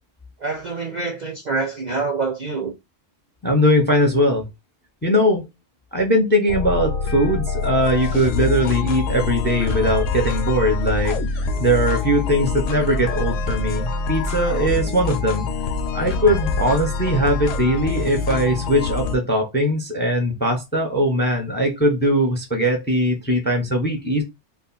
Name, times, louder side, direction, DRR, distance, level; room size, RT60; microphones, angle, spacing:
voice 1, 0.4-2.8 16.6-16.7, right 4 dB, 50° right, 0.5 m, -26 dB
voice 2, 3.4-4.5 5.0-5.5 5.9-11.2 11.6-15.5 15.9-24.2, equal, 10° left, 0.6 m, -20 dB
sound 1, 6.5-19.2, left 4 dB, 80° left, 0.9 m, -25 dB
2.4 x 2.4 x 3.9 m
omnidirectional pair, 1.3 m